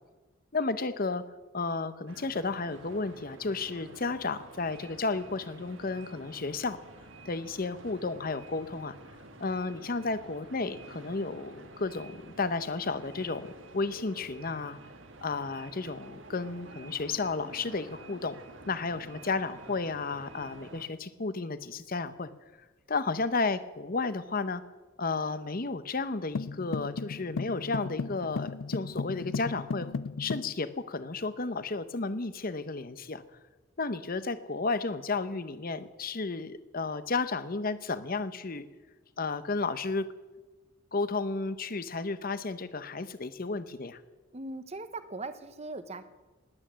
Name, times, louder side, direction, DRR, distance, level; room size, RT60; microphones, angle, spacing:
voice 1, 0.5-1.2 1.5-6.8 7.2-9.0 9.4-14.8 15.2-18.4 18.7-22.3 22.9-24.6 25.0-29.9 30.2-33.2 33.8-38.7 39.2-40.1 40.9-44.0, left 3 dB, 45° left, 13 dB, 0.8 m, -33 dB
sound 1, 2.1-20.9, right 2 dB, 65° right, 1.5 m, -50 dB
sound 2, 26.3-30.5, left 4 dB, 70° left, 0.4 m, -35 dB
voice 2, 44.3-46.0, right 2 dB, 30° right, 11 dB, 0.9 m, -39 dB
19.5 x 9.1 x 7.4 m, 1.2 s
head